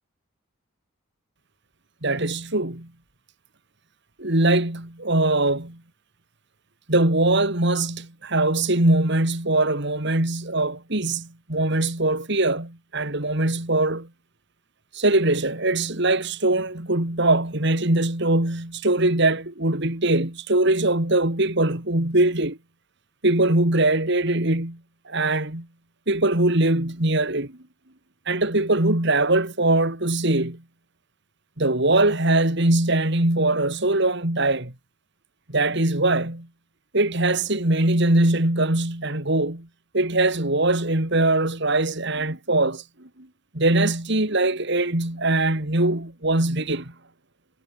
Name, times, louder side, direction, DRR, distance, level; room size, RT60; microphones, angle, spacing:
voice 1, 2.0-2.9 4.2-5.8 6.9-14.1 14.9-22.6 23.2-24.8 25.1-25.7 26.1-27.6 28.3-30.6 31.6-34.7 35.5-36.5 36.9-39.7 39.9-43.3 43.5-46.9, right 2 dB, 55° right, 3.0 m, -22 dB
head